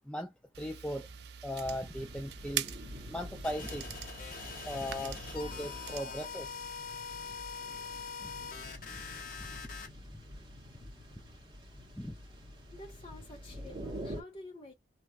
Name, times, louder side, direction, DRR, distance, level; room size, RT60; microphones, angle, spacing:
sound 1, 0.5-6.0, right 10 dB, 70° right, 0.4 m, -43 dB
voice 1, 0.6-1.1 1.4-2.7 3.1-4.0 4.7-6.6 12.0-12.1, equal, 5° left, 0.4 m, -38 dB
sound 2, 1.6-14.2, equal, 25° right, 1.7 m, -47 dB
sound 3, 3.4-9.9, left 5 dB, 50° left, 1.1 m, -43 dB
voice 2, 12.7-14.7, left 2 dB, 30° left, 1.6 m, -49 dB
3.1 x 2.9 x 2.4 m
head